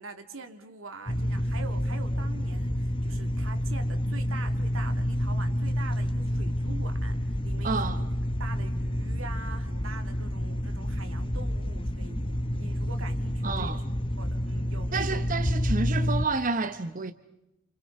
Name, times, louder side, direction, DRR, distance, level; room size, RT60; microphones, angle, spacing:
voice 1, 0.0-8.1 8.4-13.8 14.2-15.3, right 3 dB, 85° right, 2.6 m, -44 dB
sound 1, 1.1-16.3, equal, 25° left, 1.0 m, -29 dB
voice 2, 7.6-8.0 13.4-13.8 14.9-17.1, right 3 dB, 40° right, 0.9 m, -29 dB
29.0 x 29.0 x 5.4 m
head